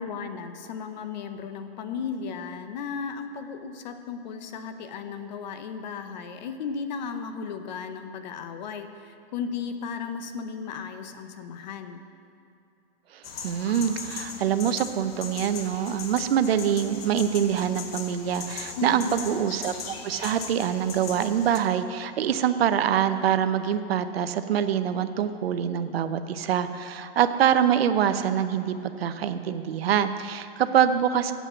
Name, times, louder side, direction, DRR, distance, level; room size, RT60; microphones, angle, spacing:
voice 1, 0.0-12.1 18.8-19.3, left 6 dB, 45° left, 8 dB, 0.8 m, -35 dB
voice 2, 13.1-31.3, right 9 dB, 70° right, 10 dB, 0.7 m, -25 dB
sound 1, 13.2-21.6, left 5 dB, 70° left, 1.4 m, -39 dB
8.2 x 8.1 x 7.7 m, 2.6 s
hypercardioid pair, 150°, 31 cm